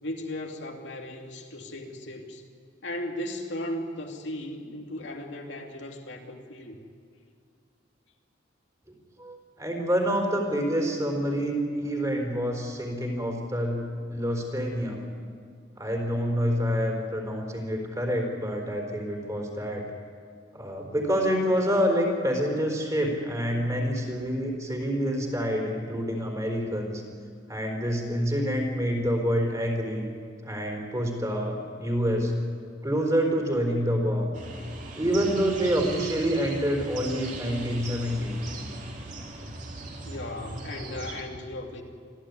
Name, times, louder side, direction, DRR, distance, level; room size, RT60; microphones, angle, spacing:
voice 1, 0.0-2.4 2.8-6.8 40.0-41.8, left 1 dB, 70° left, 2 dB, 2.6 m, -36 dB
voice 2, 9.2-13.8 14.1-15.0 15.8-19.8 20.5-27.0 27.5-30.0 30.4-32.3 32.8-34.3 35.0-38.4, equal, 20° right, 2 dB, 4.2 m, -27 dB
sound 1, 34.3-41.2, right 2 dB, 40° right, 3.2 m, -38 dB
26.0 x 15.5 x 9.6 m, 2.2 s
head